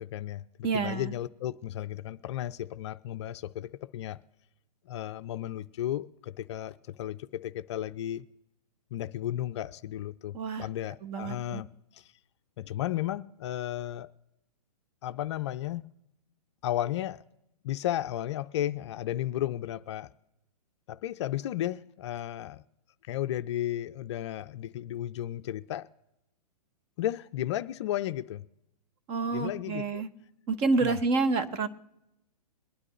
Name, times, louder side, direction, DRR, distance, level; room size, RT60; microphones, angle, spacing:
voice 1, 0.0-4.2 4.9-8.3 8.9-11.7 11.9-12.1 12.6-14.1 15.0-15.9 16.6-17.2 17.6-20.1 20.9-22.6 23.1-25.9 27.0-28.4 29.3-30.0 30.8-31.0, left 12 dB, 45° left, 0.4 m, -34 dB
voice 2, 0.6-1.1 10.3-10.7 11.0-11.6 29.1-30.1 30.5-31.7, right 4 dB, 30° right, 1.0 m, -28 dB
23.0 x 9.7 x 3.1 m
hypercardioid pair, 125°, 20 cm